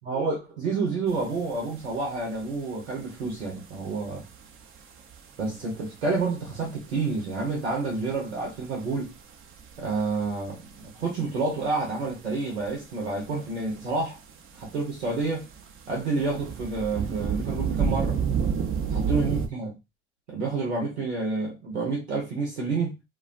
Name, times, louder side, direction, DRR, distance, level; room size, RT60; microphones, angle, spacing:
voice 1, 0.1-4.2 5.4-9.1 9.8-14.2 14.7-15.5 15.9-18.2 19.1-19.8 20.3-23.0, right 3 dB, 90° right, 0.9 m, -29 dB
sound 1, 1.1-19.5, right 6 dB, 40° right, 0.6 m, -32 dB
2.3 x 2.2 x 2.4 m
hypercardioid pair, 65°, 32 cm